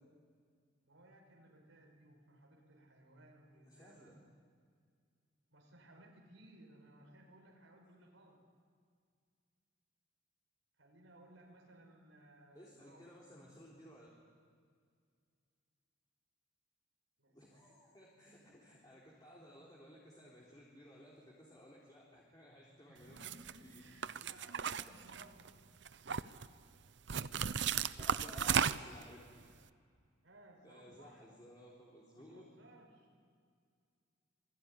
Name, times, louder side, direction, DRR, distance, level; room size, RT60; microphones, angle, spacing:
voice 1, 0.8-4.2 5.5-8.4 10.8-13.1 17.2-17.8 18.2-18.6 22.9-25.6 30.2-31.3 32.1-33.1, right 1 dB, 90° right, 0 dB, 5.6 m, -61 dB
voice 2, 3.7-4.2 12.5-14.1 17.3-23.3 23.6-23.8 28.0-29.4 30.6-32.4, left 1 dB, 20° left, -4 dB, 3.8 m, -57 dB
sound 1, 23.2-23.5 24.0-25.5 25.9-26.5 27.1-29.0, right 7 dB, 60° right, 0.7 m, -35 dB
27.0 x 21.0 x 9.9 m, 2.1 s
head